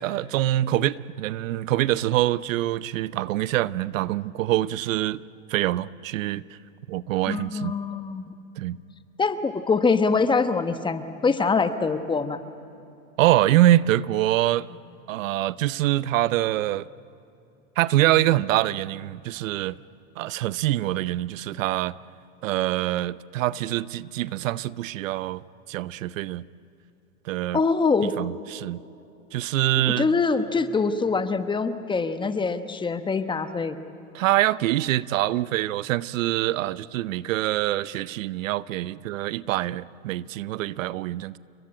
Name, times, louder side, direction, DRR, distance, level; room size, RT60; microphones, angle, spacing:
voice 1, 0.0-5.2 5.5-6.4 6.9-7.7 8.6-8.8 13.2-14.7 15.1-16.9 17.8-19.8 20.2-21.9 22.4-25.4 25.7-26.4 27.3-27.6 28.0-28.8 29.3-30.1 34.1-41.4, right 14 dB, 70° right, 0.7 m, -24 dB
voice 2, 7.2-8.2 9.2-12.4 27.5-28.1 29.8-33.8, left 4 dB, 10° left, 1.1 m, -24 dB
29.0 x 23.0 x 8.8 m
hypercardioid pair, 130°, 40 cm